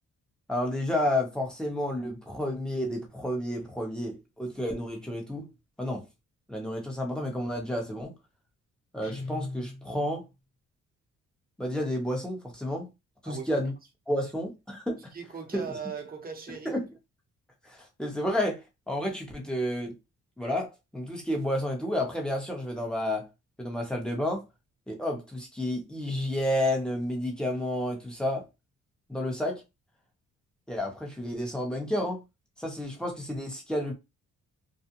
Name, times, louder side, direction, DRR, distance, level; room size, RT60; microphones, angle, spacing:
voice 1, 0.5-5.5 5.8-6.0 6.5-8.1 8.9-10.2 11.6-12.9 13.2-13.7 14.1-15.0 15.5-15.6 16.6-16.9 17.6-20.0 20.4-23.2 23.6-24.4 24.9-28.4 29.1-29.6 30.7-32.2 32.6-33.9, left 1 dB, 5° left, 0.9 m, -31 dB
Guitar, 9.0-10.3, left 2 dB, 45° left, 1.1 m, -39 dB
voice 2, 13.2-13.6 15.1-16.8, right 6 dB, 30° right, 0.9 m, -39 dB
2.4 x 2.2 x 2.8 m
cardioid pair, 90°, 30 cm